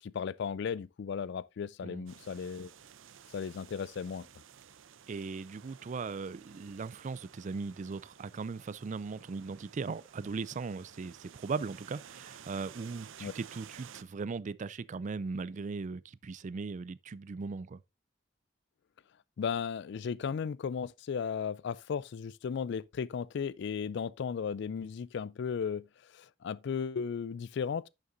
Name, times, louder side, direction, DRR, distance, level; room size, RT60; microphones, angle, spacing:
voice 1, 0.0-2.7 3.3-4.3 13.2-13.3 19.4-27.9, left 6 dB, 60° left, 0.4 m, -35 dB
sound 1, 2.1-14.0, right 8 dB, 85° right, 0.6 m, -54 dB
voice 2, 5.1-17.8, right 4 dB, 40° right, 0.4 m, -38 dB
11.0 x 6.6 x 2.6 m
head